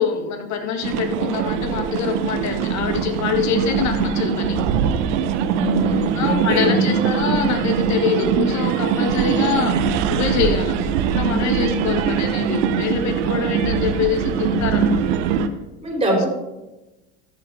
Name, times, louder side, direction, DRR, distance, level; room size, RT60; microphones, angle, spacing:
voice 1, 0.0-4.6 6.1-9.8 10.1-15.0, left 6 dB, 50° left, 5 dB, 1.8 m, -25 dB
sound 1, 0.8-15.5, right 7 dB, 75° right, 0.9 m, -22 dB
voice 2, 5.5-6.9 15.8-16.3, equal, 15° right, 0 dB, 3.5 m, -23 dB
13.5 x 5.7 x 4.2 m, 1.0 s
supercardioid pair, 95°, 36 cm